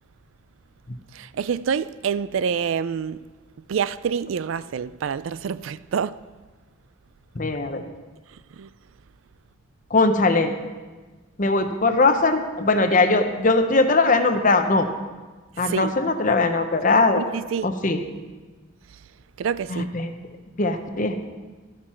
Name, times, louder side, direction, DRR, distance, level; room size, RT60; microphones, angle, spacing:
voice 1, 1.1-3.2 3.7-6.2 8.6-8.7 15.6-15.9 17.1-17.7 19.4-19.9, right 7 dB, 80° right, 0.4 m, -27 dB
voice 2, 7.4-7.8 9.9-10.5 11.4-14.9 15.6-17.2 17.6-18.0 19.7-20.1 20.6-21.2, left 3 dB, 40° left, 0.9 m, -20 dB
12.5 x 11.5 x 4.4 m
head